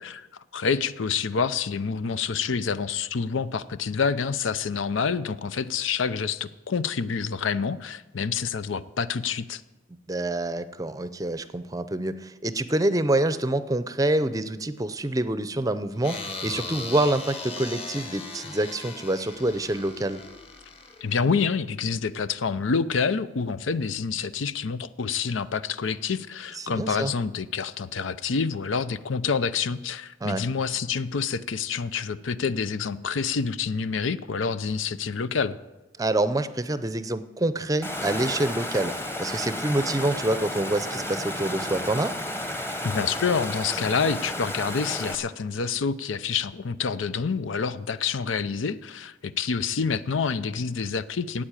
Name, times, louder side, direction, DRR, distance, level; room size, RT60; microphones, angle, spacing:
voice 1, 0.5-9.6 21.0-35.6 42.8-51.4, left 5 dB, 90° left, 15 dB, 0.6 m, -27 dB
voice 2, 10.1-20.2 26.6-27.1 30.2-30.4 36.0-38.9 39.2-42.1, right 1 dB, 20° right, 13 dB, 0.6 m, -26 dB
sound 1, 16.0-21.3, left 3 dB, 30° left, 1.4 m, -38 dB
Water, 37.8-45.1, left 1 dB, 15° left, 1.1 m, -32 dB
13.0 x 8.7 x 8.9 m, 1.1 s
head